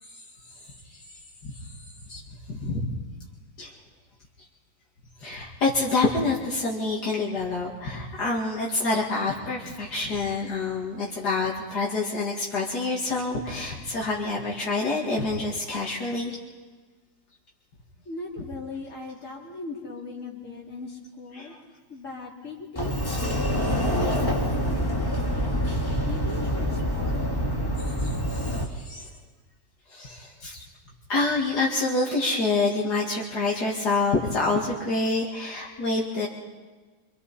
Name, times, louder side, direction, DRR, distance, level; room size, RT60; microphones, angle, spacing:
voice 1, 0.6-1.0 1.4-1.7 2.1-2.2 2.5-2.9 3.6-3.7 5.2-16.4 21.3-21.6 24.0-24.4 26.0-26.4 26.7-26.8 27.8-29.1 29.9-30.6 31.1-36.3, left 3 dB, 75° left, -4 dB, 2.7 m, -27 dB
voice 2, 18.0-21.5 21.9-25.6 26.1-27.8, left 3 dB, 45° left, -3 dB, 3.7 m, -40 dB
Sliding door, 22.8-28.6, equal, 15° left, 1.9 m, -26 dB
26.0 x 25.5 x 4.3 m, 1.4 s
omnidirectional pair, 1.8 m